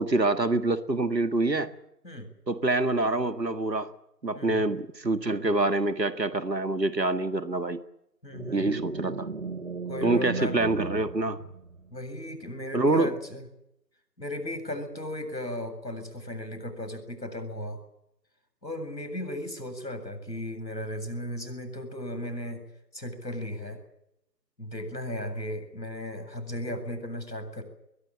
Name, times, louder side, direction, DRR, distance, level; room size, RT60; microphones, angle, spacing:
voice 1, 0.0-1.7 2.5-3.9 4.2-7.8 8.5-9.3 10.0-11.4 12.7-13.2, right 2 dB, 80° right, 11 dB, 1.8 m, -26 dB
voice 2, 4.3-4.8 8.2-8.8 9.9-10.6 11.9-13.4 14.2-17.8 18.6-22.6 22.9-23.8 24.6-27.6, left 1 dB, 90° left, 7 dB, 7.5 m, -36 dB
sound 1, 8.3-12.0, right 4 dB, 50° right, 1.1 m, -36 dB
21.5 x 19.5 x 8.9 m, 0.83 s
figure-of-eight pair, 165°, 49 cm